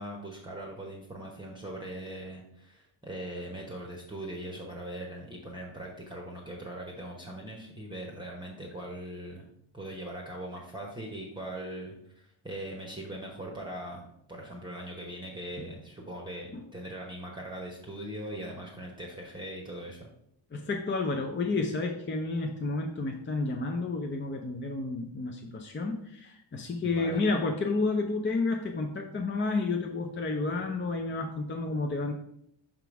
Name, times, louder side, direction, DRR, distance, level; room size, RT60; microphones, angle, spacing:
voice 1, 0.0-9.5 9.7-20.1 26.8-27.2, right 1 dB, 10° right, -2 dB, 1.0 m, -40 dB
voice 2, 20.5-32.1, left 3 dB, 25° left, 2 dB, 0.6 m, -30 dB
6.0 x 3.8 x 4.7 m, 0.74 s
cardioid pair, 110°, 48 cm